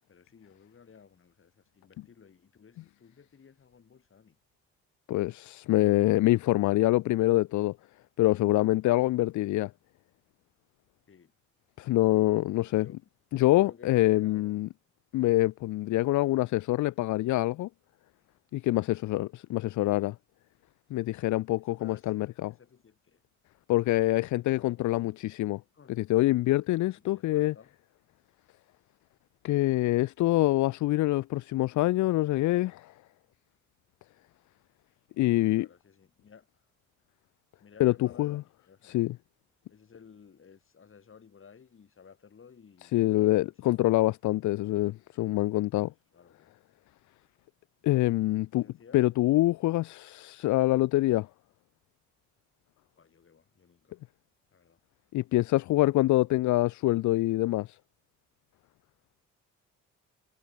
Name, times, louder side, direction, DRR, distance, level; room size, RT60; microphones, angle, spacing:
voice 1, 0.1-4.4 11.1-11.3 12.6-13.0 13.5-14.6 21.7-23.2 24.5-25.0 25.7-25.9 27.0-27.7 35.2-36.5 37.6-39.1 39.7-43.8 45.8-46.5 48.6-49.0 53.0-54.0 54.5-54.8, left 6 dB, 45° left, 7.5 m, -55 dB
voice 2, 5.1-7.8 8.2-9.7 11.8-12.9 13.3-14.7 15.1-17.7 18.5-20.2 20.9-22.5 23.7-25.6 25.9-27.5 29.4-32.9 35.2-35.7 37.8-38.4 38.8-39.2 42.8-45.9 47.8-48.7 48.9-51.3 55.1-57.8, left 17 dB, 70° left, 0.6 m, -25 dB
cardioid pair, 90°, 30 cm